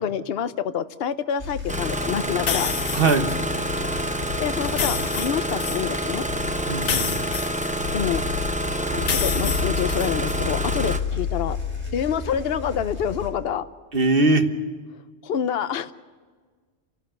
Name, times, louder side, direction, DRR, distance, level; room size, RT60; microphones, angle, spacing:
voice 1, 0.0-2.8 4.4-6.2 7.9-8.2 8.9-11.6 11.9-13.7 15.2-15.9, left 8 dB, 60° left, 12 dB, 1.0 m, -27 dB
sound 1, 1.4-13.3, left 5 dB, 25° left, 4.4 m, -31 dB
Engine starting, 1.7-11.0, right 1 dB, 5° right, 0.7 m, -28 dB
sound 2, 2.5-3.4 4.6-5.8 6.8-8.2 9.0-10.4, left 7 dB, 75° left, 1.2 m, -29 dB
voice 2, 2.9-3.4 6.7-7.2 13.9-14.5, right 3 dB, 50° right, 6 dB, 1.6 m, -21 dB
29.0 x 12.0 x 8.1 m, 1.5 s
omnidirectional pair, 1.2 m